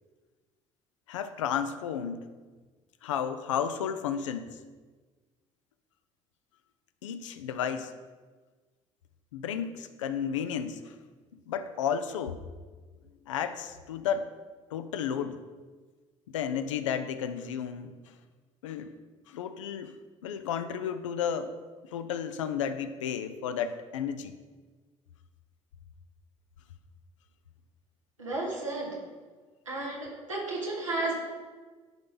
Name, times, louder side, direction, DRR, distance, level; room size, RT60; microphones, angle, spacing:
voice 1, 1.1-2.3 3.0-4.5 7.0-7.9 9.3-11.0 11.5-12.4 13.3-14.3 14.7-15.4 16.3-18.0 18.6-18.9 19.3-19.9 20.2-21.5 21.9-24.3, left 8 dB, 80° left, 10 dB, 0.5 m, -32 dB
voice 2, 28.2-29.0 29.6-31.1, right 2 dB, 90° right, -4 dB, 1.4 m, -33 dB
10.5 x 3.8 x 3.8 m, 1.4 s
figure-of-eight pair, 55°, 16 cm